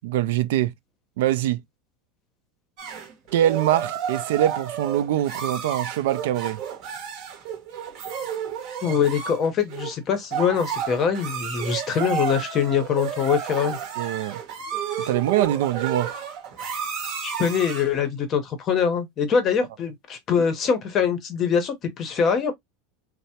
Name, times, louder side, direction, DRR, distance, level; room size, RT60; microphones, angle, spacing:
voice 1, 0.0-0.7 1.2-1.6 3.3-6.6 14.0-14.4 15.1-16.1, right 12 dB, 80° right, 0.4 m, -23 dB
sound 1, 2.8-18.0, right 8 dB, 45° right, 0.7 m, -31 dB
voice 2, 8.8-13.8 17.2-22.5, left 7 dB, 25° left, 0.7 m, -23 dB
3.2 x 2.0 x 2.8 m
supercardioid pair, 170°, 0 cm